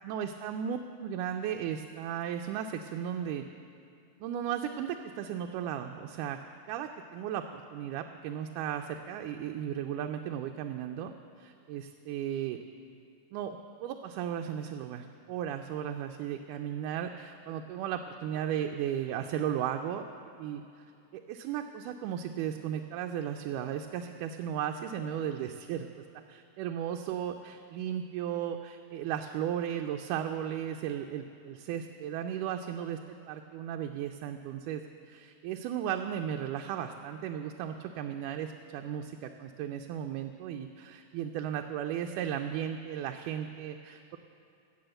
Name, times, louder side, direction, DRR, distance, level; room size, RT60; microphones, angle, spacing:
voice 1, 0.0-3.4 4.2-6.4 6.7-11.1 11.4-12.6 13.3-20.0 20.4-20.8 21.1-25.9 26.3-44.2, right 9 dB, 90° right, 4 dB, 2.1 m, -35 dB
15.5 x 6.2 x 7.7 m, 2.6 s
omnidirectional pair, 3.6 m